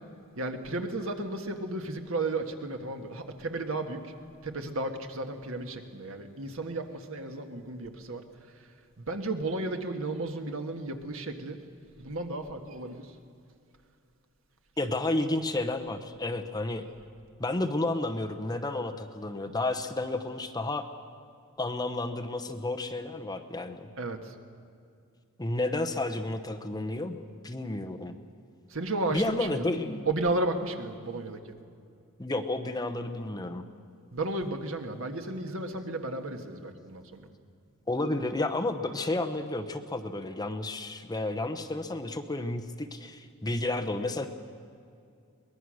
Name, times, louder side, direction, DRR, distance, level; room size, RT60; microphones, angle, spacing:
voice 1, 0.4-4.1 4.4-8.2 8.6-8.7 9.0-11.6 12.0-13.1 24.0-24.3 28.7-29.7 30.1-31.5 34.1-37.3, right 2 dB, 65° right, 5 dB, 1.6 m, -33 dB
voice 2, 14.8-16.8 17.4-20.9 21.6-23.9 25.4-27.2 27.4-28.2 29.1-30.1 32.2-33.6 37.9-44.3, left 2 dB, 20° left, 6 dB, 0.9 m, -31 dB
23.0 x 19.5 x 6.4 m, 2.4 s
head